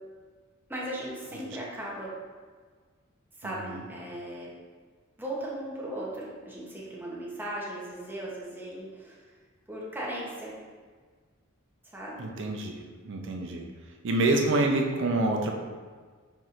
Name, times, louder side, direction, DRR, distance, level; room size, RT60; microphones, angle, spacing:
voice 1, 0.7-2.1 3.4-4.5 5.2-9.3 9.7-10.5 11.9-12.3 14.6-14.7, right 1 dB, 10° right, -5 dB, 0.7 m, -37 dB
voice 2, 3.4-3.8 12.2-13.6 14.0-15.6, right 2 dB, 60° right, 2 dB, 0.5 m, -27 dB
5.9 x 2.7 x 2.4 m, 1.5 s
head